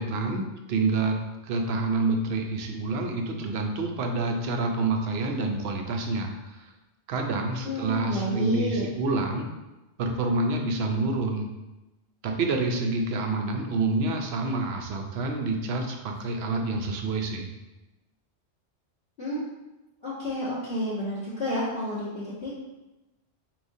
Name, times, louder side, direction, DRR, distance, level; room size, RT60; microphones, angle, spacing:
voice 1, 0.0-6.7 7.1-9.5 10.0-11.5 12.2-17.5, right 3 dB, 65° right, 3 dB, 0.8 m, -28 dB
voice 2, 7.6-8.8 19.2-19.4 20.0-22.6, equal, 55° left, -10 dB, 1.3 m, -30 dB
4.8 x 3.0 x 2.6 m, 1.0 s
omnidirectional pair, 1.2 m